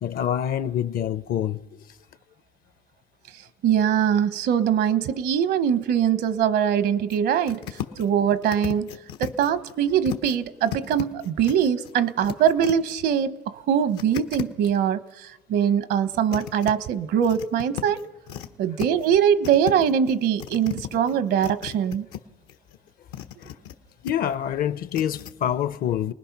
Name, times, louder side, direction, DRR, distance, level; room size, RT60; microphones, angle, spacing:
voice 1, 0.0-1.6 7.9-8.0 23.4-23.5 24.0-26.1, left 10 dB, 60° left, 0.8 m, -26 dB
voice 2, 3.6-7.6 8.0-8.9 9.2-18.1 18.6-22.1, right 8 dB, 75° right, 1.0 m, -22 dB
sound 1, 7.1-7.2 7.5-8.1 8.4-10.4 10.6-12.9 13.9-14.7 15.9-16.7 17.2-18.5 18.8-19.2 19.4-22.2 22.5-23.7 24.1-24.3 24.9-25.3, left 10 dB, 85° left, 1.2 m, -35 dB
29.0 x 19.5 x 5.9 m
cardioid pair, 110°, 17 cm